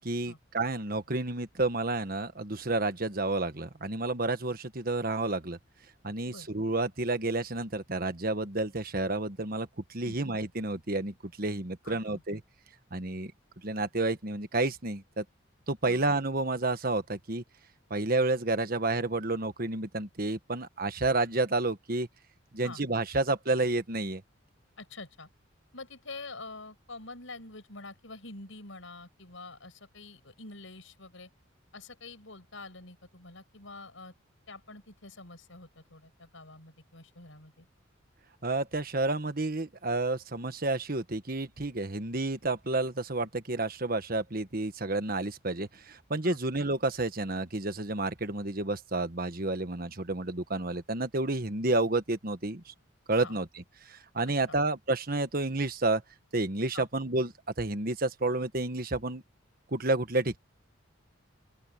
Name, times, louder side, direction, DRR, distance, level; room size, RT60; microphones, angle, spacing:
voice 1, 0.0-5.6 6.0-12.4 12.9-13.3 13.6-15.2 15.7-17.4 17.9-22.1 22.5-24.2 38.4-52.7 53.1-53.5 53.9-56.0 56.3-57.3 57.6-59.2 59.7-60.4, right 2 dB, 45° right, 1.5 m, -30 dB
voice 2, 11.8-12.2 15.8-16.0 22.6-22.8 24.8-25.3 25.7-31.3 31.7-34.1 34.5-37.7 46.2-46.4 53.2-53.4 54.3-54.6 56.7-56.9, left 3 dB, 75° left, 6.1 m, -46 dB
open air
head